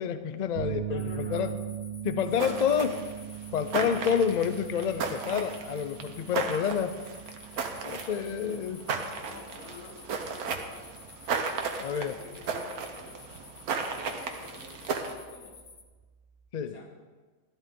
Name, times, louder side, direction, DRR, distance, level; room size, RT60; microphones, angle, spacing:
voice 1, 0.0-1.5 2.0-3.0 3.5-6.9 7.8-8.8 11.8-12.2 16.5-16.8, left 7 dB, 65° left, 11 dB, 0.4 m, -28 dB
sound 1, 0.6-16.5, right 11 dB, 55° right, 0.8 m, -42 dB
voice 2, 0.9-1.5 2.3-2.7 9.2-10.0 10.4-10.7 12.1-13.2 14.0-15.6 16.6-16.9, left 4 dB, 80° left, 1 dB, 2.1 m, -49 dB
sound 2, 1.0-15.8, left 4 dB, 45° left, 1.2 m, -52 dB
sound 3, 2.4-15.1, right 5 dB, 80° right, 1.5 m, -35 dB
13.5 x 11.5 x 3.7 m, 1.4 s
omnidirectional pair, 1.5 m